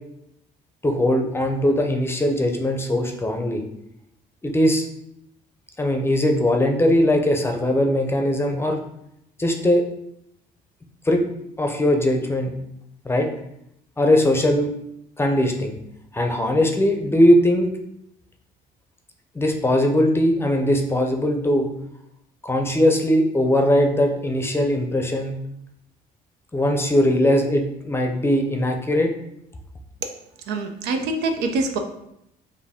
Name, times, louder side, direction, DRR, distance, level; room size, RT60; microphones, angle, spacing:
voice 1, 0.8-3.6 4.4-4.9 5.8-8.8 9.4-9.8 11.0-11.2 11.6-12.5 13.0-13.3 14.0-14.7 15.2-15.7 16.1-17.7 19.3-21.7 22.4-25.4 26.5-29.1, left 1 dB, 15° left, 3 dB, 0.6 m, -20 dB
voice 2, 30.5-31.8, right 3 dB, 85° right, 5 dB, 0.6 m, -24 dB
4.6 x 2.6 x 3.5 m, 0.79 s
cardioid pair, 110°, 17 cm